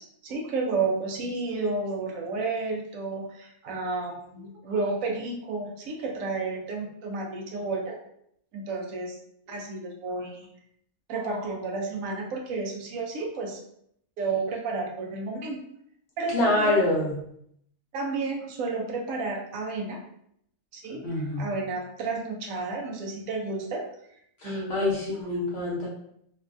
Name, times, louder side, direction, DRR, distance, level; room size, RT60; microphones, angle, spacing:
voice 1, 0.0-8.0 8.5-9.2 9.5-10.5 11.1-13.6 14.2-15.6 16.2-16.8 17.9-20.0 20.7-21.1 21.4-23.8 24.4-24.9, right 3 dB, 75° right, 0 dB, 1.0 m, -31 dB
voice 2, 16.3-17.3 21.0-21.5 24.4-25.9, left 2 dB, 55° left, -5 dB, 0.9 m, -26 dB
3.1 x 2.2 x 2.5 m, 0.71 s
omnidirectional pair, 1.5 m